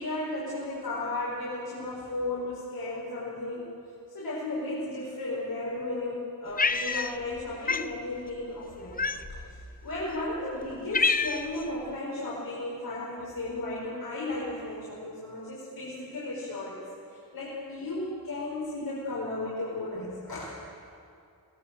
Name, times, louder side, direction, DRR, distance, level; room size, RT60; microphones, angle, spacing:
voice 1, 0.0-3.6 4.1-9.0 9.3-9.4 9.8-16.8 17.1-20.5, left 2 dB, 75° left, -7 dB, 5.4 m, -34 dB
Cat, 6.6-7.4 7.7-7.9 9.0-9.5 10.2-10.3 10.6-11.6, left 4 dB, 25° left, 0.7 m, -27 dB
22.0 x 18.5 x 7.6 m, 2.5 s
wide cardioid pair, 105°, 35 cm